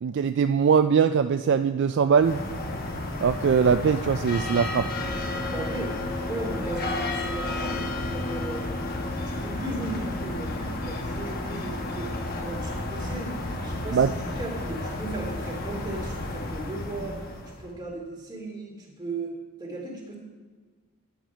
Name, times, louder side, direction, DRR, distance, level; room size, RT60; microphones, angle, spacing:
voice 1, 0.0-2.4 3.2-4.9 13.9-14.1, right 6 dB, 55° right, 9 dB, 0.3 m, -21 dB
sound 1, 2.2-17.7, left 2 dB, 45° left, 1.1 m, -32 dB
voice 2, 5.5-8.7 9.2-12.1 12.4-17.2 17.6-20.2, right 2 dB, 20° right, -2 dB, 2.4 m, -36 dB
10.5 x 8.7 x 5.0 m, 1.4 s
head